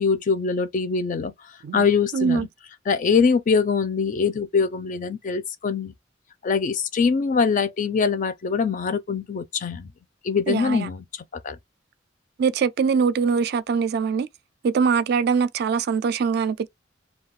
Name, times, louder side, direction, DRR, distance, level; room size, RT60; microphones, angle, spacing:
voice 1, 0.0-1.3 1.7-2.5 2.9-5.9 6.4-9.9 10.2-11.0 11.4-11.6, left 5 dB, 45° left, 0.4 m, -23 dB
voice 2, 2.1-2.5 10.5-10.9 12.4-14.3 14.6-16.7, right 6 dB, 60° right, 0.3 m, -22 dB
2.4 x 2.3 x 3.5 m
head